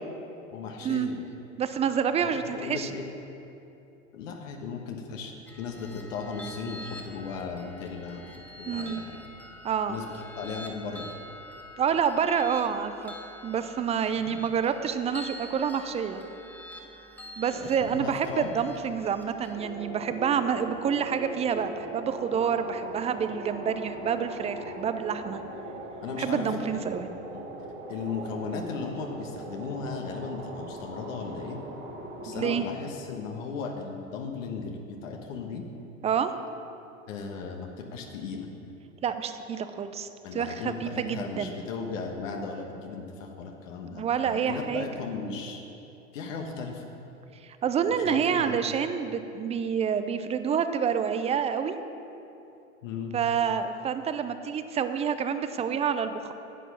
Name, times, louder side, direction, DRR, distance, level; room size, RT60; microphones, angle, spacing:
voice 1, 0.5-1.2 2.2-3.1 4.1-8.2 8.6-9.2 9.9-11.1 14.2-14.4 17.5-18.5 26.0-27.5 27.9-31.6 32.2-35.6 37.1-38.5 40.2-45.6 46.1-46.8 48.0-48.6 52.8-53.1, left 5 dB, 65° left, 2 dB, 1.3 m, -36 dB
voice 2, 1.6-2.9 8.7-9.0 9.6-10.0 11.8-13.1 13.4-16.2 17.4-25.4 26.2-27.1 32.3-32.6 36.0-36.3 39.0-41.6 43.9-44.9 47.4-51.8 53.1-56.3, right 7 dB, 15° right, 10 dB, 0.4 m, -28 dB
Construction steel bars, 5.5-19.6, left 1 dB, 5° left, 1.0 m, -46 dB
Wind - Synth, 19.5-32.5, right 1 dB, 65° right, 2.4 m, -40 dB
9.8 x 8.1 x 5.8 m, 2.8 s
hypercardioid pair, 90°, 41 cm